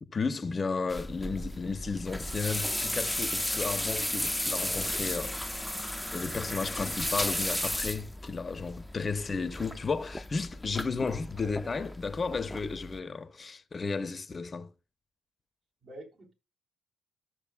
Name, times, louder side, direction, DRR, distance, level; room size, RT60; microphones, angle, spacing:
voice 1, 0.0-5.5 6.1-14.7, left 4 dB, 40° left, 0.9 m, -33 dB
sound 1, 0.9-13.0, left 1 dB, 5° left, 0.8 m, -34 dB
voice 2, 11.4-11.8 15.8-16.3, right 2 dB, 55° right, 3.8 m, -48 dB
14.0 x 6.7 x 2.3 m
hypercardioid pair, 45°, 0 cm